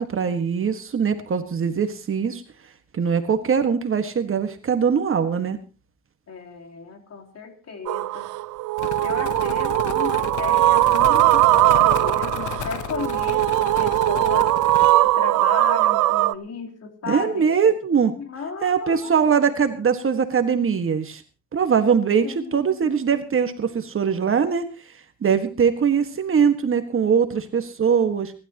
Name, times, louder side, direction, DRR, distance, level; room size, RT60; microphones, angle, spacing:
voice 1, 0.0-2.4 2.9-5.6 17.1-18.1 18.6-21.2 21.5-24.7 25.2-28.3, right 6 dB, 45° right, 8 dB, 1.7 m, -21 dB
voice 2, 6.3-8.3 9.0-14.5 15.0-17.5 18.2-19.1 22.2-22.9, left 5 dB, 55° left, 3 dB, 3.6 m, -34 dB
sound 1, 7.9-16.3, right 17 dB, 90° right, 0.7 m, -20 dB
sound 2, 8.8-14.9, left 12 dB, 80° left, 1.0 m, -33 dB
29.5 x 12.5 x 3.0 m, 0.31 s
cardioid pair, 90°, 30 cm